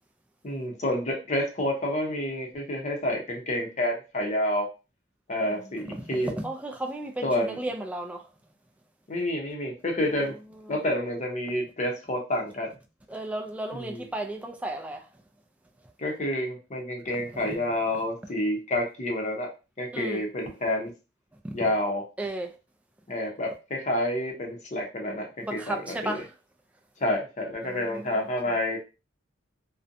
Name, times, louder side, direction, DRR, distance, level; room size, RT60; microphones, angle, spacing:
voice 1, 0.4-4.7 5.3-6.4 7.2-7.6 9.1-10.3 10.7-12.7 13.7-14.1 16.0-19.5 19.8-20.9 21.5-22.0 23.1-26.2 27.0-28.8, left 1 dB, 40° left, 0.7 m, -29 dB
voice 2, 5.4-8.2 13.1-15.0 17.3-17.6 19.9-20.2 21.4-21.5 22.2-22.5 25.4-26.3 27.6-28.1, right 1 dB, 5° right, 0.3 m, -34 dB
2.5 x 2.1 x 2.5 m
head